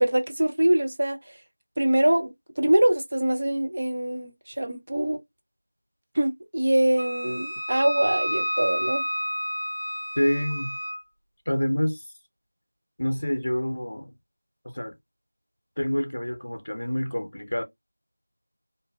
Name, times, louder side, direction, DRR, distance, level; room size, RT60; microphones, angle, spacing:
voice 1, 0.0-1.4 1.8-5.2 6.1-9.0, right 1 dB, 30° right, 0.5 m, -24 dB
Wind instrument woodwind instrument, 7.0-11.0, equal, 90° left, 0.5 m, -30 dB
voice 2, 10.2-10.8 11.5-12.0 13.0-14.1 14.6-14.9 15.8-17.6, equal, 40° left, 0.7 m, -27 dB
2.7 x 2.6 x 2.3 m
figure-of-eight pair, 175°, 0 cm